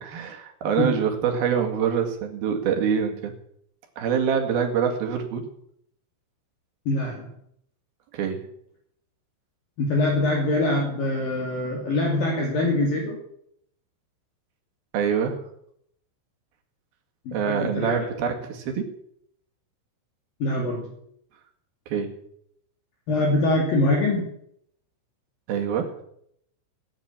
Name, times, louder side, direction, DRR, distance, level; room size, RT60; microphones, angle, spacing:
voice 1, 0.0-3.3 4.0-5.5 8.1-8.5 14.9-15.4 17.3-18.9 21.9-22.2 25.5-26.0, right 7 dB, 55° right, 4 dB, 3.2 m, -25 dB
voice 2, 6.9-7.3 9.8-13.2 17.3-18.1 20.4-20.9 23.1-24.3, left 2 dB, 50° left, 0 dB, 3.6 m, -24 dB
17.0 x 8.9 x 8.7 m, 0.70 s
omnidirectional pair, 6.0 m